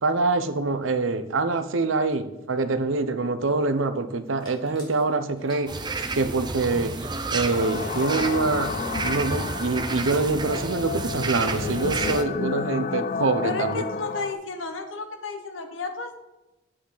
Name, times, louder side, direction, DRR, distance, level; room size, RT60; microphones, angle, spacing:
voice 1, 0.0-5.8 6.2-6.9 7.3-8.7 9.0-13.8, right 3 dB, 90° right, 10 dB, 0.7 m, -25 dB
sound 1, 4.3-9.1, left 2 dB, 25° left, 3.5 m, -50 dB
sound 2, 5.7-12.2, right 3 dB, 25° right, 0.6 m, -31 dB
sound 3, 7.5-14.3, left 5 dB, 45° left, 0.4 m, -31 dB
voice 2, 13.4-16.2, left 4 dB, 85° left, 5 dB, 1.3 m, -32 dB
8.7 x 7.6 x 3.9 m, 0.99 s
head